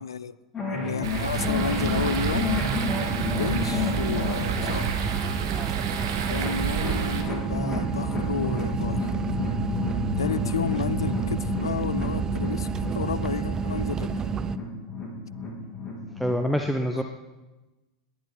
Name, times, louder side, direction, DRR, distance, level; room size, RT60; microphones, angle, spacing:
voice 1, 0.0-0.3 0.7-2.6 3.3-4.9 6.3-9.1 10.2-12.7 12.9-14.1 16.9-17.0, left 6 dB, 70° left, 19 dB, 0.5 m, -31 dB
sound 1, 0.5-16.5, left 3 dB, 20° left, 3.9 m, -31 dB
sound 2, 1.0-7.2, right 8 dB, 60° right, 2.2 m, -31 dB
sound 3, 1.4-14.6, right 7 dB, 25° right, 0.5 m, -30 dB
voice 2, 16.2-17.0, equal, ahead, 4 dB, 1.0 m, -25 dB
19.5 x 11.0 x 6.0 m, 1.1 s
figure-of-eight pair, 85°, 2 cm